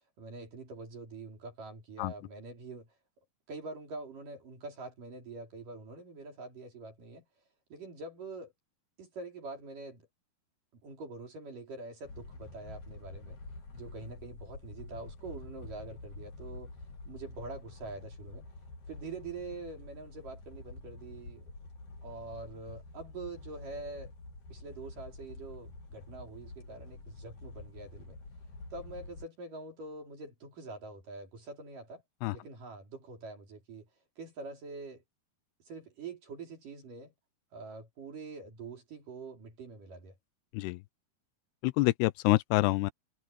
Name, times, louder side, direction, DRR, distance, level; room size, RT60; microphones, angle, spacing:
voice 1, 0.2-2.9 3.5-7.2 7.7-8.5 9.0-10.1 10.7-13.4 13.7-16.7 17.1-18.5 18.9-21.5 22.0-24.1 24.5-28.2 28.7-32.0 32.3-33.9 34.2-35.0 35.7-37.1 37.5-40.2, right 3 dB, 55° right, 5.4 m, -45 dB
sound 1, 12.0-29.3, left 2 dB, 50° left, 5.1 m, -48 dB
voice 2, 41.6-42.9, left 21 dB, 90° left, 2.7 m, -27 dB
omnidirectional pair, 4.6 m